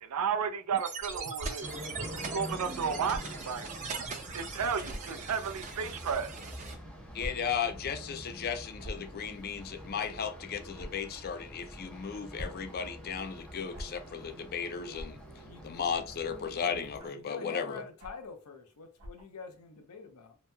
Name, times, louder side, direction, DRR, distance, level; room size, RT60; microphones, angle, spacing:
voice 1, 0.0-3.8 4.3-6.4, right 6 dB, 85° right, 0.4 m, -33 dB
sound 1, 0.7-6.8, right 4 dB, 35° right, 0.5 m, -41 dB
sound 2, 1.3-1.5 3.1-3.3 4.1-4.2 4.8-5.0 6.0-6.2 7.2-7.3 7.6-7.8 8.8-9.1 10.7-10.9 12.1-12.6 13.7-13.9 14.9-15.1 15.9-16.1 17.0-17.2 18.0-18.3 19.0-19.2, equal, 60° right, 0.9 m, -41 dB
sound 3, 1.6-17.0, equal, 5° left, 0.7 m, -46 dB
voice 2, 7.1-15.2 15.6-17.8, left 6 dB, 45° left, 0.4 m, -35 dB
voice 3, 17.1-20.4, left 4 dB, 90° left, 0.7 m, -46 dB
2.9 x 2.7 x 2.2 m
head